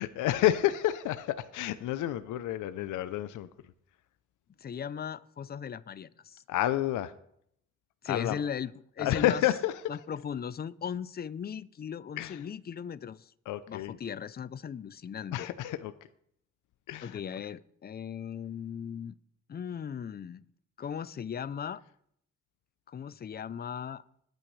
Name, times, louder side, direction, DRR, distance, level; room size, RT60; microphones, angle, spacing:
voice 1, 0.0-3.5 6.5-7.1 8.1-8.4 9.0-9.7 12.2-12.4 13.5-13.9 15.3-15.9 16.9-17.2, left 13 dB, 80° left, 0.7 m, -29 dB
voice 2, 4.6-6.4 8.0-9.4 9.9-13.3 13.7-15.5 17.0-19.1 19.5-20.4 20.8-21.8 22.9-24.0, left 7 dB, 30° left, 0.5 m, -38 dB
20.5 x 9.1 x 3.3 m
cardioid pair, 90°, 30 cm